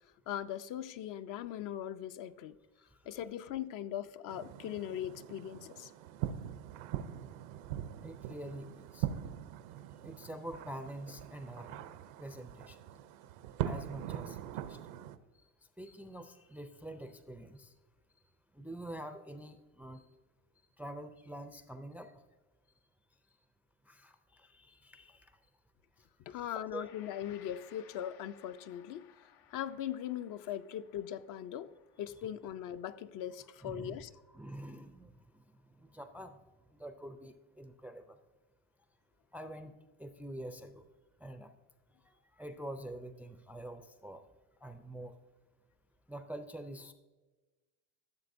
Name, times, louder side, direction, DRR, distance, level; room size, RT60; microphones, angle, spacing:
voice 1, 0.3-2.6 3.1-5.9 26.3-29.1 29.5-34.1, left 11 dB, 55° left, 0.5 m, -40 dB
sound 1, 4.3-15.2, right 11 dB, 85° right, 0.6 m, -42 dB
voice 2, 8.0-9.1 10.0-11.9 12.2-12.8 13.6-14.8 15.8-17.7 18.5-20.1 20.8-22.1 23.9-25.3 26.3-26.8 33.6-34.0 34.3-35.4 35.8-36.4 36.7-38.2 39.3-39.7 40.0-40.8 41.2-41.5 42.1-44.2 44.6-45.2 46.1-46.9, right 1 dB, 5° right, 0.3 m, -46 dB
Gong, 26.7-35.9, left 10 dB, 80° left, 0.8 m, -63 dB
13.5 x 6.9 x 2.6 m
supercardioid pair, 100°, 40 cm